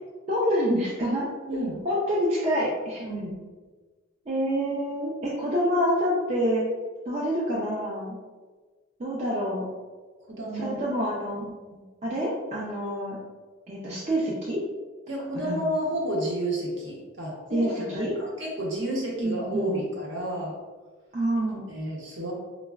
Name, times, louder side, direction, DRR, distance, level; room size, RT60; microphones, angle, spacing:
voice 1, 0.3-1.3 1.8-3.0 4.3-6.6 7.1-8.2 9.0-9.6 10.5-11.5 12.0-13.2 13.7-14.6 15.4-15.7 17.5-18.1 19.2-19.8 21.1-21.7, equal, 30° right, -5 dB, 0.4 m, -27 dB
voice 2, 1.5-1.8 3.0-3.4 10.3-10.8 11.7-11.8 15.1-20.6 21.5-22.3, right 1 dB, 60° right, -2 dB, 0.7 m, -31 dB
4.0 x 2.0 x 2.3 m, 1.3 s
head